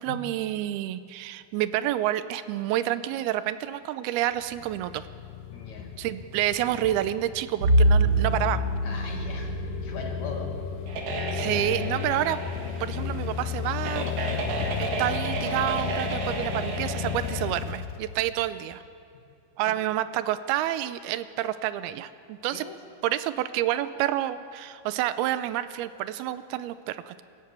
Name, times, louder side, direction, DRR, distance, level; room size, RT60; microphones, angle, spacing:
voice 1, 0.0-5.0 6.0-8.6 11.3-12.4 12.8-14.4 14.8-18.8 19.6-22.7 23.0-27.2, right 13 dB, 85° right, 14 dB, 2.6 m, -29 dB
sound 1, 4.4-18.7, left 9 dB, 80° left, 2.2 m, -34 dB
voice 2, 5.5-6.0 8.8-10.5 19.7-19.8 22.5-22.8, left 4 dB, 55° left, 2 dB, 2.9 m, -39 dB
Bowed string instrument, 7.6-12.2, right 1 dB, 30° right, 7.8 m, -26 dB
sound 2, 10.9-17.5, right 3 dB, 65° right, 3.5 m, -33 dB
24.5 x 14.0 x 8.4 m, 2.5 s
omnidirectional pair, 4.4 m